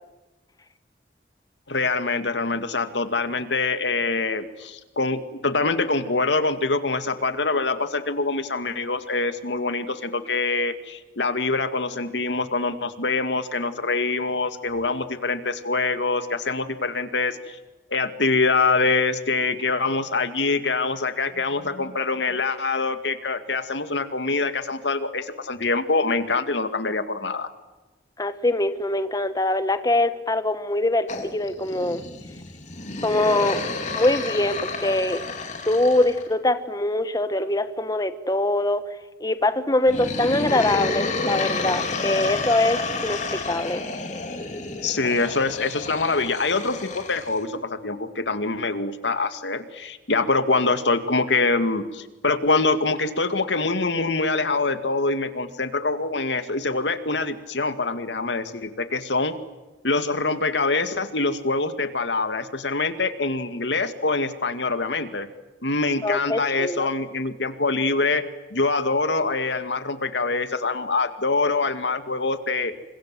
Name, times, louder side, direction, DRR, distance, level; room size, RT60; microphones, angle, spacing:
voice 1, 1.7-17.6 17.9-27.5 44.8-59.3 59.8-65.3 65.6-68.2 68.5-72.7, left 3 dB, 90° left, 10 dB, 2.2 m, -24 dB
voice 2, 28.2-32.0 33.0-33.7 33.9-35.2 35.7-38.8 39.2-43.8 66.0-66.9, left 1 dB, 20° left, 10 dB, 1.3 m, -23 dB
sound 1, 31.1-36.3 39.8-47.4, left 3 dB, 45° left, 4.2 m, -30 dB
29.5 x 25.5 x 7.8 m, 1.1 s
head